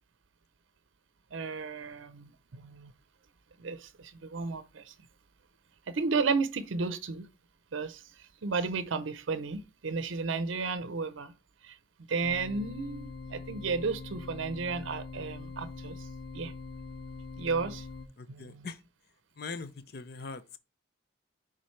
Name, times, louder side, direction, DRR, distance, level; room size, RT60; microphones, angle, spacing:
voice 1, 1.3-2.9 3.6-4.9 5.9-7.3 7.7-11.3 11.6-11.8 12.1-16.1 16.3-16.5 17.4-17.9 18.3-18.7, right 4 dB, 70° right, 0.6 m, -33 dB
sound 1, 12.2-18.1, left 3 dB, 80° left, 1.5 m, -43 dB
voice 2, 18.2-18.8 19.4-20.6, left 4 dB, 50° left, 0.6 m, -41 dB
9.7 x 3.8 x 3.2 m
head